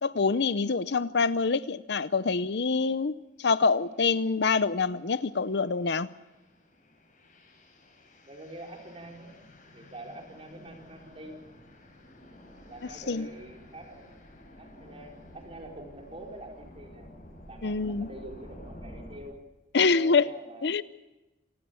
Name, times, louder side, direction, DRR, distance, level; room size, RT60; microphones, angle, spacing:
voice 1, 0.0-6.1 13.1-13.3 17.6-18.1 19.7-20.3 20.6-20.8, left 4 dB, 65° left, 0.7 m, -26 dB
sound 1, 3.9-4.2 4.7-19.2, left 1 dB, 45° left, 7.1 m, -51 dB
voice 2, 8.2-9.3 9.7-11.4 12.7-14.1 14.6-17.1 17.5-19.4 19.7-20.8, right 1 dB, 35° right, 4.6 m, -45 dB
27.0 x 18.5 x 7.1 m
head